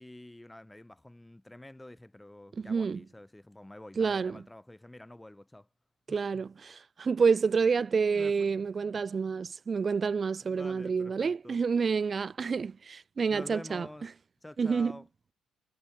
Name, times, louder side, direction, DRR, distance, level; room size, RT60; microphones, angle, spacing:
voice 1, 0.0-5.7 6.1-6.4 8.1-8.5 10.4-11.6 13.3-14.1 14.4-15.1, left 1 dB, 10° left, 4.0 m, -48 dB
voice 2, 2.6-3.0 4.0-4.4 6.1-13.9 14.6-15.0, right 5 dB, 40° right, 0.3 m, -28 dB
hypercardioid pair, 50°, 0 cm